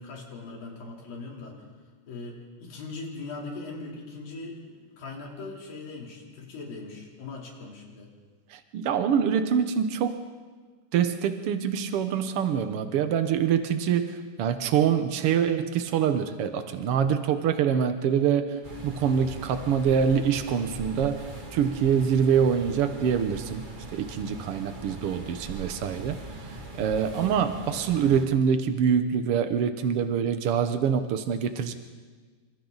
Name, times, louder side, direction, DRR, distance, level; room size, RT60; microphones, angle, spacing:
voice 1, 0.0-1.6 2.1-8.1, left 3 dB, 85° left, -2 dB, 5.3 m, -40 dB
voice 2, 8.5-10.2 10.9-23.6 23.9-26.5 26.8-31.7, right 7 dB, 85° right, 8 dB, 1.3 m, -25 dB
sound 1, 18.6-28.2, right 2 dB, 35° right, 0.7 m, -41 dB
28.0 x 26.0 x 4.0 m, 1.5 s
omnidirectional pair, 4.0 m